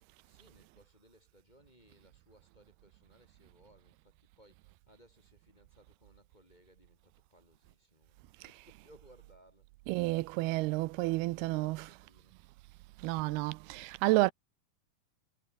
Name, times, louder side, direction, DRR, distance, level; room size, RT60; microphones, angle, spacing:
voice 1, 0.2-9.7 10.9-12.4, equal, 10° left, 6.9 m, -64 dB
voice 2, 9.9-11.9 13.0-14.3, right 21 dB, 85° right, 2.6 m, -30 dB
omnidirectional pair, 4.5 m